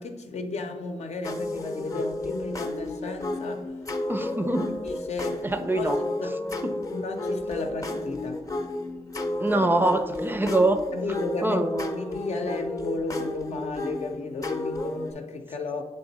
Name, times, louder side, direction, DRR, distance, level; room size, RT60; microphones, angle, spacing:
voice 1, 0.0-3.7 4.8-5.5 5.7-6.4 6.9-8.4 10.9-11.6 11.9-15.8, left 3 dB, 60° left, 5 dB, 0.7 m, -34 dB
sound 1, 1.2-15.1, left 2 dB, 25° left, 0.7 m, -32 dB
voice 2, 4.1-4.8 5.4-6.0 6.6-6.8 9.4-10.8 11.4-11.9, right 2 dB, 15° right, 8 dB, 0.4 m, -24 dB
6.6 x 3.7 x 4.0 m, 1.3 s
cardioid pair, 75°, 12 cm